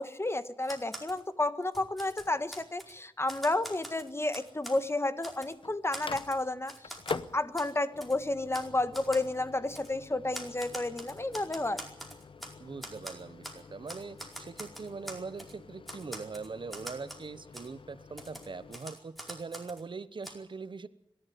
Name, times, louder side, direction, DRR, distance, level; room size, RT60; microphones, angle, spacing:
voice 1, 0.0-11.8, left 2 dB, 30° left, 12 dB, 1.5 m, -31 dB
Typewriter, 0.6-1.2 1.6-2.9 3.3-4.8 5.2-5.5 5.9-7.2 7.5-7.7 8.0-8.2 8.5-8.7 8.9-9.3 9.7-9.9 10.3-12.5 12.8-13.6 13.9-15.5 15.9-17.3 17.5-17.7 18.2-19.8 20.2-20.3, equal, ahead, 4.8 m, -44 dB
Microwave oven, 5.1-18.8, left 4 dB, 85° left, 0.8 m, -46 dB
voice 2, 12.6-20.9, right 4 dB, 70° right, 15 dB, 0.9 m, -42 dB
25.0 x 12.0 x 9.5 m, 0.84 s
wide cardioid pair, 60°, 9 cm